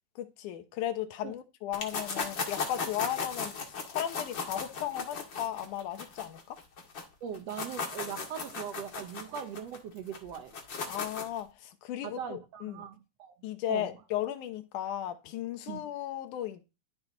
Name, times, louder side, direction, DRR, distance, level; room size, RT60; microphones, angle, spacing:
voice 1, 0.2-6.6 10.9-12.8 13.4-16.6, left 11 dB, 85° left, 2.5 m, -36 dB
sound 1, 1.7-7.0 7.3-11.4, left 5 dB, 40° left, 2.5 m, -37 dB
voice 2, 7.2-10.5 12.0-13.4 13.7-13.9 15.7-15.9, right 8 dB, 70° right, 1.8 m, -40 dB
13.0 x 6.0 x 3.9 m
omnidirectional pair, 3.4 m